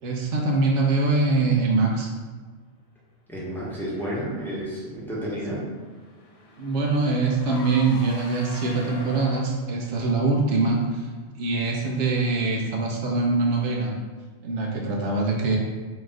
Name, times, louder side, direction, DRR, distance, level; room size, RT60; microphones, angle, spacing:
voice 1, 0.0-2.1 6.6-11.1 11.3-13.9 14.4-15.6, right 3 dB, 75° right, 0 dB, 0.9 m, -23 dB
voice 2, 3.3-5.6, equal, ahead, -7 dB, 0.8 m, -31 dB
Car / Engine, 4.8-9.8, left 2 dB, 70° left, 0.3 m, -43 dB
4.1 x 2.5 x 3.5 m, 1.4 s
omnidirectional pair, 1.2 m